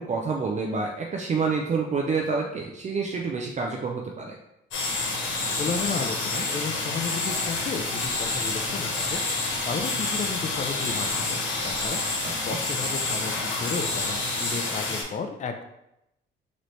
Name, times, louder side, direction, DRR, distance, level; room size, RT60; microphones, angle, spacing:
voice 1, 0.0-4.4 12.2-12.6, right 4 dB, 35° right, 0 dB, 0.5 m, -28 dB
sound 1, 4.7-15.0, left 2 dB, 70° left, 1.2 m, -28 dB
voice 2, 5.6-15.6, left 5 dB, 40° left, 6 dB, 0.5 m, -33 dB
4.0 x 3.0 x 3.2 m, 0.85 s
cardioid pair, 90°, 20 cm